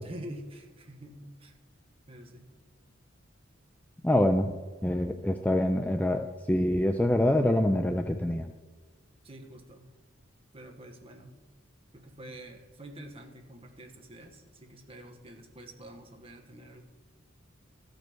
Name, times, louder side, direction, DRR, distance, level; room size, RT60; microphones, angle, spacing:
voice 1, 0.0-1.5 2.1-2.5 9.2-9.9 10.5-11.4 11.9-16.8, right 1 dB, 30° right, 3 dB, 1.2 m, -47 dB
voice 2, 4.0-4.5 4.8-8.5, left 1 dB, 5° left, 6 dB, 0.3 m, -25 dB
13.5 x 5.2 x 6.1 m, 1.4 s
head